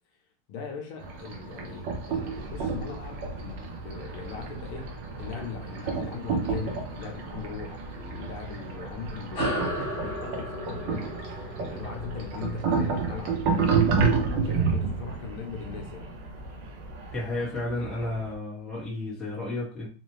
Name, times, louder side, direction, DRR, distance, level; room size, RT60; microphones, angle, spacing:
voice 1, 0.5-11.2 11.6-13.9 14.3-16.2, left 6 dB, 75° left, 1.6 m, -40 dB
sound 1, 1.0-17.1, right 5 dB, 65° right, 1.3 m, -30 dB
sound 2, 2.1-18.4, right 3 dB, 85° right, 1.6 m, -44 dB
sound 3, 9.3-14.2, left 1 dB, 45° left, 2.2 m, -36 dB
voice 2, 17.1-19.9, left 2 dB, ahead, 1.2 m, -32 dB
4.0 x 2.7 x 3.1 m
omnidirectional pair, 2.4 m